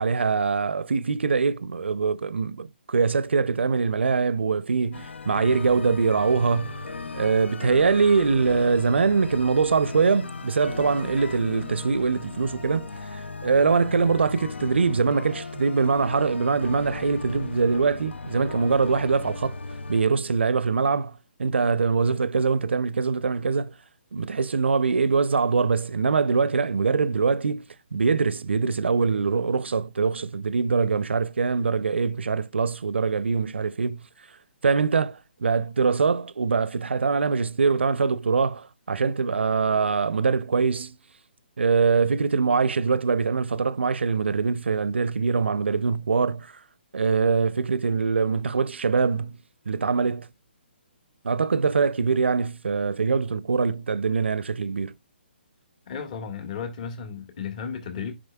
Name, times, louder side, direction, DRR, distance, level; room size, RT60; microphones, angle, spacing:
voice 1, 0.0-6.8 7.1-12.9 13.4-19.6 19.9-23.7 24.1-27.6 27.9-34.1 34.6-41.0 41.6-46.5 46.9-49.4 49.7-50.3 51.2-54.9, right 5 dB, 80° right, 0.5 m, -23 dB
sound 1, 4.9-20.0, left 4 dB, 85° left, 0.6 m, -37 dB
voice 2, 55.9-58.2, left 6 dB, 40° left, 1.5 m, -34 dB
11.0 x 5.2 x 2.2 m
figure-of-eight pair, 140°, 6 cm